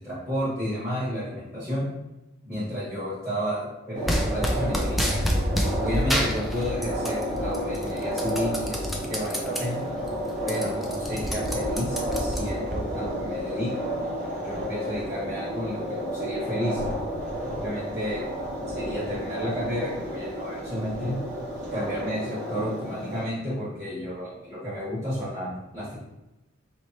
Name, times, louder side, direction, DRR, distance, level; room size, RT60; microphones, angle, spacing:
voice 1, 0.0-1.9 2.4-5.2 5.8-9.8 10.4-13.7 14.4-16.8 17.4-18.2 18.7-21.2 21.7-26.0, equal, 15° right, -12 dB, 1.4 m, -32 dB
sound 1, 3.9-23.2, equal, 40° right, 1.4 m, -32 dB
sound 2, 4.1-5.7 6.1-7.2 7.5-9.6 10.0-10.1 10.4-12.8, equal, ahead, 0.4 m, -28 dB
Thunder, 4.7-22.1, left 1 dB, 30° left, 1.1 m, -38 dB
3.2 x 3.0 x 4.2 m, 0.97 s
head